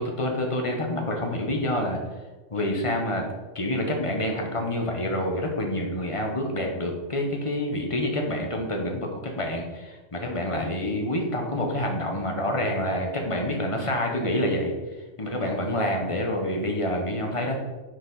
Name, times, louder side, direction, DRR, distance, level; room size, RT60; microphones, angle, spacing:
voice 1, 0.0-2.0 2.5-3.3 3.5-17.6, left 1 dB, 30° left, 1 dB, 1.0 m, -27 dB
6.3 x 4.8 x 3.9 m, 1.2 s
omnidirectional pair, 1.3 m